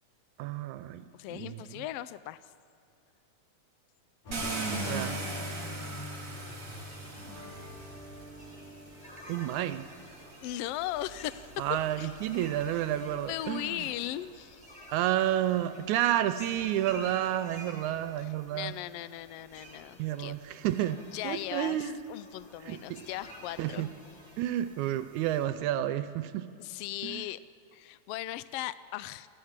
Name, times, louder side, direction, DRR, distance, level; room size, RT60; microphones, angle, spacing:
voice 1, 0.4-1.8 4.9-5.2 7.4-7.5 9.3-9.9 11.6-13.8 14.9-18.7 20.0-22.0 22.6-23.1 23.6-23.9 24.4-26.5 27.0-27.2, right 12 dB, 85° right, 12 dB, 2.0 m, -31 dB
voice 2, 1.1-2.4 10.4-11.5 12.0-12.1 13.3-14.6 18.2-18.3 18.5-20.3 21.1-23.9 26.6-27.4 27.7-29.3, left 14 dB, 85° left, 16 dB, 1.3 m, -38 dB
sound 1, 4.2-10.4, left 2 dB, 60° left, 4.9 m, -43 dB
Car, 4.3-8.4 9.4-9.5 10.0-13.3, right 3 dB, 35° right, 3.9 m, -40 dB
sound 2, 6.4-25.5, equal, ahead, 4.0 m, -51 dB
25.0 x 14.5 x 7.3 m, 2.6 s
omnidirectional pair, 3.3 m